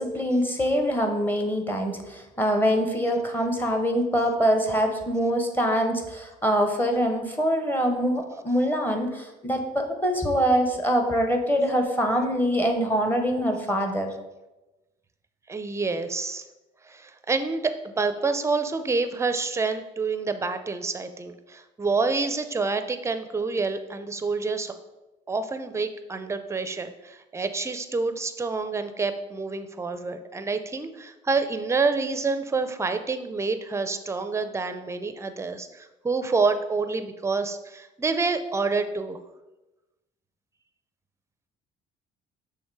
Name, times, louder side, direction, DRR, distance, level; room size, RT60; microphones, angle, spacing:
voice 1, 0.0-14.1, equal, 10° left, 4 dB, 0.9 m, -24 dB
voice 2, 15.5-16.4 16.8-24.7 25.3-39.2, right 4 dB, 15° right, 9 dB, 0.5 m, -28 dB
6.3 x 3.4 x 4.7 m, 1.0 s
cardioid pair, 110°, 17 cm